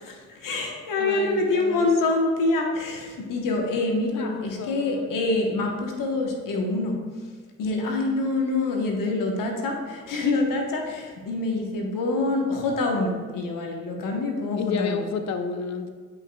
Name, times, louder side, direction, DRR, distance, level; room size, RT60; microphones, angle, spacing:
voice 1, 0.3-7.0 7.6-15.0, left 2 dB, 80° left, 1 dB, 1.0 m, -26 dB
voice 2, 1.0-1.9 4.1-5.2 14.5-15.9, left 5 dB, 55° left, 7 dB, 0.6 m, -31 dB
8.2 x 5.2 x 2.2 m, 1.5 s
supercardioid pair, 45°, 33 cm